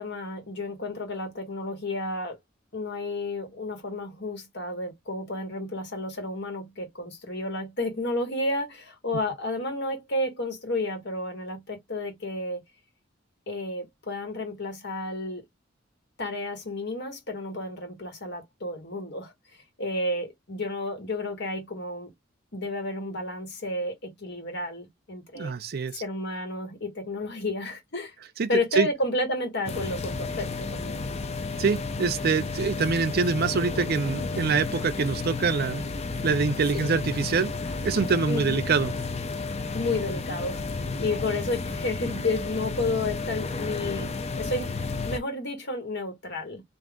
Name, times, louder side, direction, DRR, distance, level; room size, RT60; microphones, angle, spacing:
voice 1, 0.0-2.4 2.7-12.6 13.5-15.4 16.2-19.3 19.8-22.1 22.5-25.5 26.0-28.1 28.5-31.0 36.7-36.9 38.3-38.6 39.7-40.6 41.0-46.6, left 2 dB, 60° left, 1.5 m, -31 dB
voice 2, 25.4-26.0 28.4-28.9 31.6-35.8 36.2-37.5 37.8-38.9, right 5 dB, 55° right, 0.5 m, -25 dB
sound 1, 29.7-45.2, left 3 dB, 35° left, 0.5 m, -32 dB
3.7 x 2.6 x 3.6 m
head